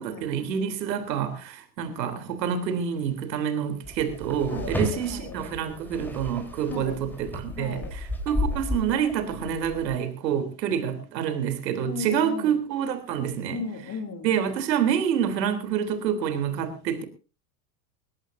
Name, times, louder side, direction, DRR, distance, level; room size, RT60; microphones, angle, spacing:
voice 1, 0.0-7.8 8.3-13.7 14.2-17.1, right 8 dB, 80° right, 3.6 m, -27 dB
sound 1, 3.8-10.0, left 1 dB, 5° left, 4.0 m, -34 dB
voice 2, 4.5-5.3 6.6-7.0 7.5-7.9 11.8-12.6 13.5-14.3, left 4 dB, 35° left, 3.3 m, -36 dB
21.0 x 17.0 x 2.7 m
hypercardioid pair, 115°, 49 cm